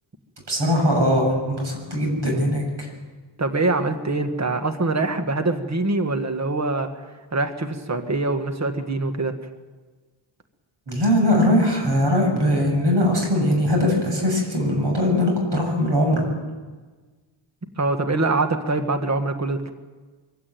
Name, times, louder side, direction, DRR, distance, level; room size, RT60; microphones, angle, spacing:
voice 1, 0.5-2.9 10.9-16.3, left 1 dB, 55° right, 1 dB, 7.3 m, -21 dB
voice 2, 3.4-6.9 7.3-9.3 17.8-19.7, right 2 dB, 35° right, 7 dB, 1.6 m, -24 dB
24.0 x 16.0 x 9.2 m, 1.3 s
wide cardioid pair, 155°, 49 cm